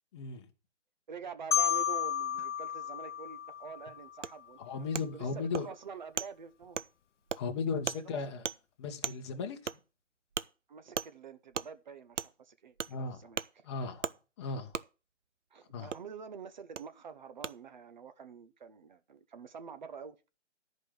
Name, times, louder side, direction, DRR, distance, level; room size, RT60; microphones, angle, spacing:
voice 1, 0.1-0.5 4.6-5.7 7.4-8.4 8.8-9.7 12.9-13.2 13.6-14.1 14.4-14.8 15.7-16.0, left 4 dB, 25° left, 1.1 m, -36 dB
voice 2, 1.1-4.9 5.1-6.8 7.9-8.2 10.7-13.4 15.5-20.2, right 6 dB, 40° right, 0.9 m, -47 dB
Marimba xylophone, 1.5-4.3, left 9 dB, 80° left, 0.6 m, -32 dB
Wood, 4.2-4.3 4.9-5.0 5.5-5.6 6.2-6.3 6.7-6.9 7.3-7.4 7.9-8.0 8.4-8.6 9.0-9.2 9.7-9.8 10.3-10.5 10.9-11.1 11.5-11.7 12.2-12.3 12.8-12.9 13.3-13.5 14.0-14.1 14.7-14.8 15.9-16.0 16.7-16.8 17.4-17.5, right 7 dB, 85° right, 0.7 m, -35 dB
11.5 x 5.3 x 6.2 m
figure-of-eight pair, 155°, 36 cm